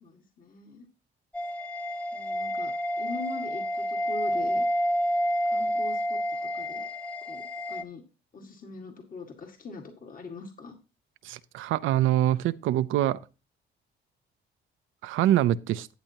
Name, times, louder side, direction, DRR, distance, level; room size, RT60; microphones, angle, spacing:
voice 1, 0.0-0.9 2.1-4.7 5.4-6.9 7.3-7.4 7.7-8.0 8.3-10.8, left 3 dB, 45° left, 1.9 m, -42 dB
sound 1, 1.3-7.8, equal, 5° left, 0.9 m, -29 dB
voice 2, 11.2-13.2 15.0-15.9, right 13 dB, 85° right, 0.6 m, -24 dB
12.0 x 8.3 x 2.9 m
cardioid pair, 90°, 20 cm